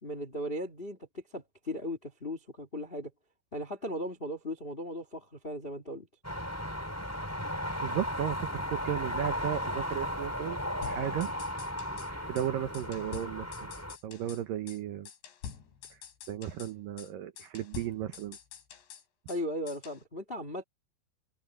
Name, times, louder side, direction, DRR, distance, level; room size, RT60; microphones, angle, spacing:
voice 1, 0.0-3.1 3.5-6.1 19.3-20.6, equal, 75° left, 0.5 m, -37 dB
sound 1, 6.2-14.0, equal, 5° left, 6.0 m, -35 dB
voice 2, 7.8-10.6 10.8-11.3 12.1-13.7 14.0-15.1 16.3-18.4, right 11 dB, 70° right, 2.2 m, -35 dB
sound 2, 10.8-12.1 12.4-12.5 12.7-14.4 14.7-14.8 15.1-16.7 17.0-17.1 17.4-19.4 19.7-20.0, left 8 dB, 90° left, 5.5 m, -47 dB
omnidirectional pair, 4.9 m